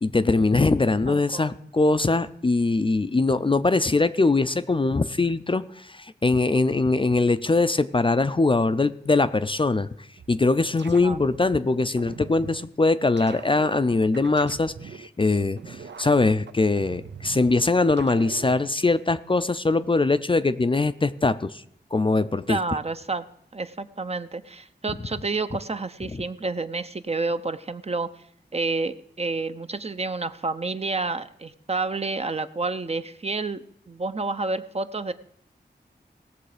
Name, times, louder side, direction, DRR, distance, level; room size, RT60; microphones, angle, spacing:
voice 1, 0.0-9.9 10.3-21.6 21.9-22.6 26.1-26.2, left 3 dB, 30° left, 12 dB, 0.4 m, -22 dB
voice 2, 1.1-1.6 11.0-11.2 22.5-23.3 23.5-28.1 28.5-35.1, right 3 dB, 35° right, 11 dB, 0.6 m, -29 dB
sound 1, 10.2-11.5 12.0-12.7 13.2-15.1 15.6-17.5 18.0-18.7, right 6 dB, 75° right, 0.6 m, -42 dB
17.5 x 6.8 x 5.0 m, 0.67 s
wide cardioid pair, 70°, 18 cm